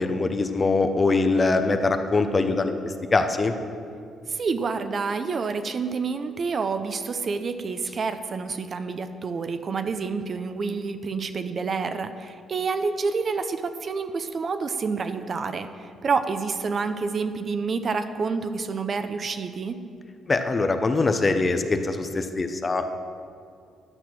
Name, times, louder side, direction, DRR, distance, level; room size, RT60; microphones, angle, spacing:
voice 1, 0.0-3.5 20.3-22.8, left 3 dB, 30° left, 8 dB, 0.7 m, -23 dB
voice 2, 4.3-19.8, right 4 dB, 45° right, 9 dB, 0.6 m, -28 dB
11.0 x 6.0 x 6.0 m, 2.3 s
cardioid pair, 90°, 0 cm